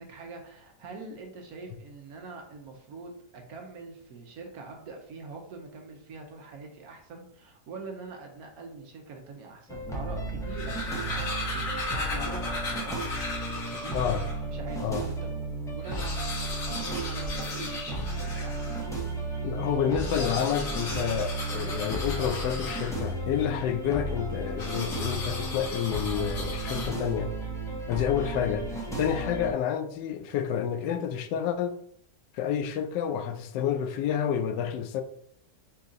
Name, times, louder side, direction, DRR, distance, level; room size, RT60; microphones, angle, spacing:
voice 1, 0.0-13.9 14.4-18.7, right 3 dB, 65° right, 1.2 m, -44 dB
sound 1, 9.7-29.5, right 2 dB, 5° left, 0.5 m, -34 dB
sound 2, 10.4-14.5 15.0-15.1 15.3-15.4 15.7-18.9 19.8-23.3 24.6-27.3, left 2 dB, 55° left, 1.6 m, -36 dB
voice 2, 19.4-27.3 27.9-28.7 29.0-31.8 32.3-35.0, left 8 dB, 85° left, 1.2 m, -29 dB
4.5 x 2.8 x 3.7 m
omnidirectional pair, 1.8 m